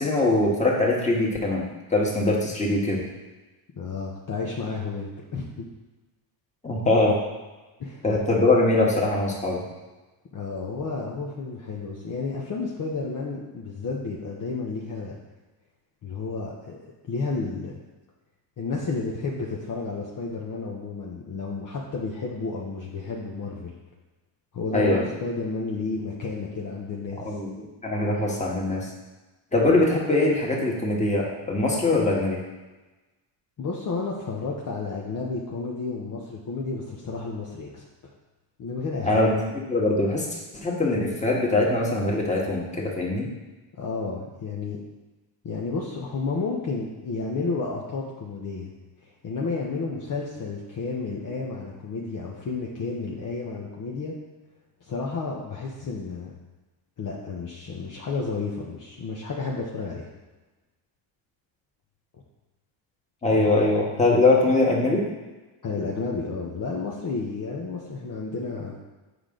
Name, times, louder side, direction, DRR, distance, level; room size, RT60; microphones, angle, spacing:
voice 1, 0.0-1.6 1.9-3.0 6.6-7.2 8.0-9.6 24.7-25.0 27.2-28.9 29.5-32.4 39.0-39.4 39.7-40.3 40.5-43.3 63.2-65.0, left 2 dB, 15° left, -2 dB, 1.6 m, -22 dB
voice 2, 3.8-5.7 7.8-8.0 10.3-15.2 16.0-16.8 17.1-17.7 18.6-23.7 24.5-27.3 33.6-38.1 38.6-39.2 43.7-44.8 45.4-48.7 49.0-54.2 54.8-56.3 57.0-60.1 63.3-63.5 65.6-68.8, left 4 dB, 40° left, -3 dB, 1.0 m, -31 dB
8.0 x 5.1 x 3.8 m, 1.2 s
cardioid pair, 105°, 48 cm